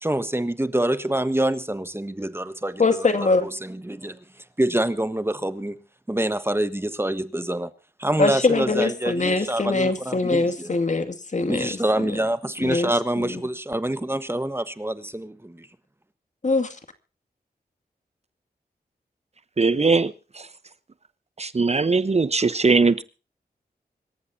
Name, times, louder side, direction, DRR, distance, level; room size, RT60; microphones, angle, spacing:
voice 1, 0.0-3.1 3.4-4.2 4.6-5.8 6.1-7.7 8.0-10.8 11.5-15.7, right 1 dB, 15° right, 1.3 m, -26 dB
voice 2, 2.8-3.5 8.2-12.1 12.6-12.9 13.2-13.4 16.4-16.8, left 3 dB, 50° left, 2.3 m, -23 dB
voice 3, 19.6-20.5 21.4-23.0, right 4 dB, 40° right, 0.9 m, -20 dB
25.5 x 14.0 x 2.8 m
cardioid pair, 60°, 16 cm